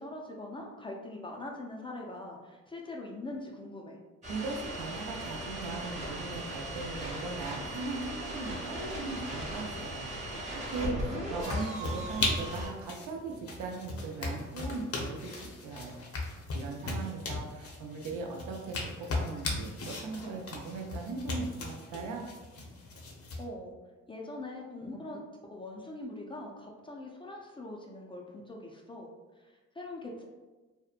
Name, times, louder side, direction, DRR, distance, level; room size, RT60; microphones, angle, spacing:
voice 1, 0.0-4.0 10.8-11.5 23.4-23.7 24.1-25.2 25.5-29.1 29.4-30.2, left 2 dB, 20° left, -1 dB, 0.3 m, -42 dB
sound 1, 4.2-12.7, right 1 dB, 25° right, 0.8 m, -38 dB
voice 2, 4.3-10.1 10.7-16.0 16.5-22.3, right 3 dB, 70° right, 1 dB, 0.6 m, -39 dB
sound 2, 11.4-23.4, left 2 dB, 50° left, 0.6 m, -37 dB
2.7 x 2.1 x 2.4 m, 1.2 s
cardioid pair, 90°, 30 cm